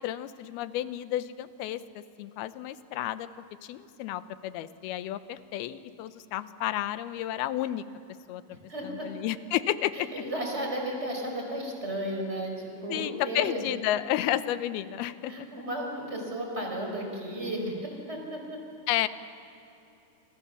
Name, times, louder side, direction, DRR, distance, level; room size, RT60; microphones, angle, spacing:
voice 1, 0.0-3.3 3.6-7.8 8.3-8.4 8.8-10.1 12.9-15.5 18.9-19.1, left 13 dB, 85° left, 13 dB, 2.8 m, -31 dB
voice 2, 8.7-9.1 9.9-13.6 15.3-18.6, right 1 dB, 15° right, 1 dB, 5.3 m, -34 dB
28.5 x 26.0 x 7.1 m, 2.8 s
omnidirectional pair, 4.4 m